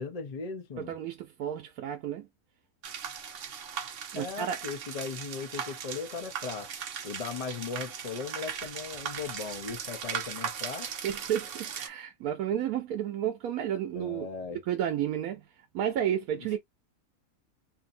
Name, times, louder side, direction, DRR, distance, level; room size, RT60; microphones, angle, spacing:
voice 1, 0.0-0.9 4.1-6.7 7.0-10.9 13.9-14.6 16.4-16.6, left 5 dB, 50° left, 0.4 m, -38 dB
voice 2, 0.8-2.3 4.1-4.6 11.0-14.3 14.7-15.4 15.7-16.6, right 10 dB, 85° right, 1.1 m, -31 dB
sound 1, 2.8-11.9, right 7 dB, 60° right, 0.6 m, -38 dB
2.7 x 2.6 x 2.4 m
omnidirectional pair, 1.5 m